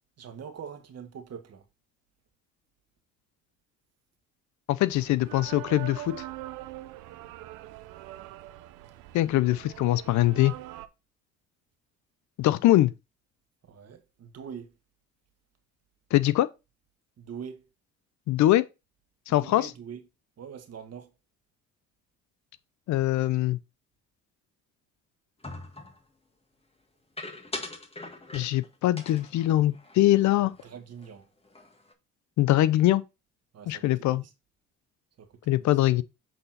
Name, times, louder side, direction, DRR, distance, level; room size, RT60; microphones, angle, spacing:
voice 1, 0.2-1.7 13.6-14.7 17.2-17.7 19.3-20.0 20.4-21.1 30.4-31.3 33.5-34.3 35.2-35.8, right 7 dB, 55° right, 1.7 m, -43 dB
voice 2, 4.7-6.1 9.1-10.5 12.4-12.9 16.1-16.5 18.3-18.6 19.3-19.6 22.9-23.6 28.3-30.5 32.4-33.0 33.7-34.2 35.5-36.0, left 15 dB, 70° left, 0.6 m, -22 dB
sound 1, 4.9-10.9, right 14 dB, 85° right, 0.7 m, -43 dB
sound 2, 25.4-26.0 27.2-28.7 29.0-30.7 31.0-31.1 31.4-31.9, left 2 dB, 20° left, 1.9 m, -41 dB
7.7 x 4.1 x 4.2 m
supercardioid pair, 70°, 30 cm